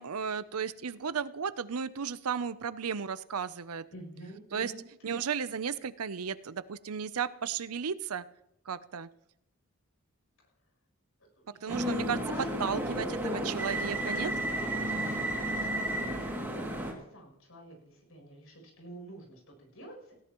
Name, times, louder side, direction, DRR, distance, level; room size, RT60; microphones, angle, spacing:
voice 1, 0.0-3.8 4.5-4.7 5.0-8.2 8.7-9.1 11.6-12.2 12.6-14.3, right 6 dB, 85° right, 15 dB, 0.6 m, -34 dB
voice 2, 3.9-5.2 11.4-12.8 14.5-20.1, right 1 dB, 70° left, 1 dB, 7.6 m, -48 dB
sound 1, 11.7-16.9, right 1 dB, 10° right, 2.5 m, -32 dB
18.5 x 17.0 x 3.1 m, 0.77 s
head